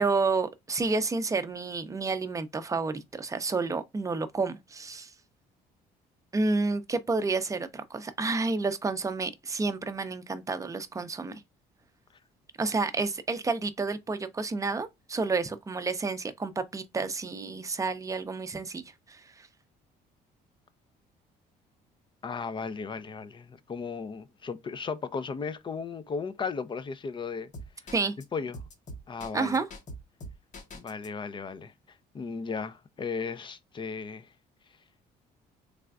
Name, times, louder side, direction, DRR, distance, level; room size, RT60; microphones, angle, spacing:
voice 1, 0.0-5.1 6.3-11.4 12.6-18.8 19.1-19.5 27.9-28.2 29.3-29.7, right 3 dB, 20° right, 0.6 m, -30 dB
voice 2, 22.2-27.5 28.3-28.6 29.1-29.6 30.7-31.7 32.1-34.3, left 5 dB, 30° left, 0.5 m, -35 dB
sound 1, 27.5-28.2 28.5-31.1, equal, 45° left, 1.0 m, -42 dB
3.7 x 3.3 x 2.3 m
cardioid pair, 110°, 17 cm